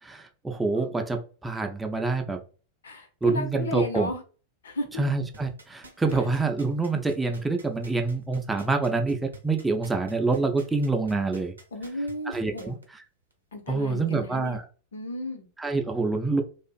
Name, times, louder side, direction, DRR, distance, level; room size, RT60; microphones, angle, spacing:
voice 1, 0.0-2.4 3.2-4.1 5.0-11.5 12.3-13.0 13.7-14.6 15.6-16.4, right 3 dB, 10° right, 0.4 m, -26 dB
voice 2, 2.8-4.2 4.6-5.0 11.7-12.8 13.5-14.6 14.9-15.5, left 1 dB, 70° left, 0.6 m, -34 dB
sound 1, 5.3-12.8 13.3-13.4, right 1 dB, 80° right, 0.6 m, -47 dB
2.5 x 2.4 x 2.3 m
figure-of-eight pair, 90°, 0 cm